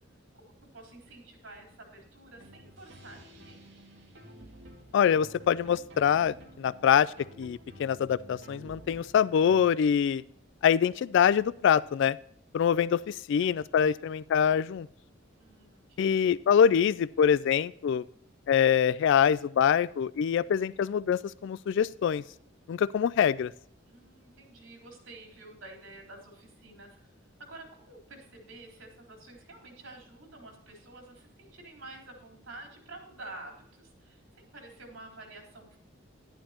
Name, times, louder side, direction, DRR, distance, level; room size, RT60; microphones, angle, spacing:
voice 1, 0.7-3.7 15.4-16.2 23.8-27.1 27.4-35.8, right 2 dB, 80° right, 1 dB, 3.9 m, -49 dB
sound 1, 2.3-9.6, right 1 dB, 65° right, 2.1 m, -51 dB
voice 2, 4.9-10.2 10.6-12.2 12.5-14.9 16.0-18.0 18.5-22.2 22.7-23.5, left 8 dB, 65° left, 20 dB, 0.3 m, -24 dB
11.5 x 11.0 x 2.9 m, 0.70 s
head